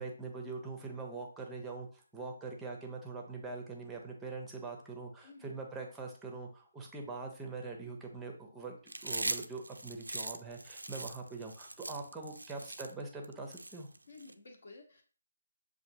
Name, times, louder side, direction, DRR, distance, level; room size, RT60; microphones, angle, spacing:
voice 1, 0.0-13.9, right 3 dB, 5° right, 2 dB, 0.7 m, -43 dB
voice 2, 5.2-5.5 14.1-15.0, left 3 dB, 55° left, 2 dB, 1.2 m, -53 dB
Chewing mastication, 8.9-14.3, right 2 dB, 80° right, 0.4 m, -40 dB
6.9 x 2.6 x 2.7 m, 0.42 s
figure-of-eight pair, 150°, 0 cm